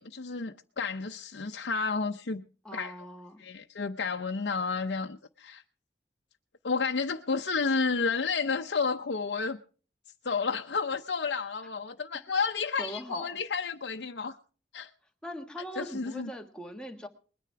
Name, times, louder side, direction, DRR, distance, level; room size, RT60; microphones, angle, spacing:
voice 1, 0.0-2.4 2.7-2.9 3.4-5.6 6.6-9.6 10.2-14.4 14.7-14.9 15.8-16.3, left 4 dB, 85° left, 0.7 m, -31 dB
voice 2, 2.6-3.4 12.8-13.4 15.2-17.1, equal, 5° left, 1.5 m, -40 dB
21.0 x 10.0 x 4.7 m
head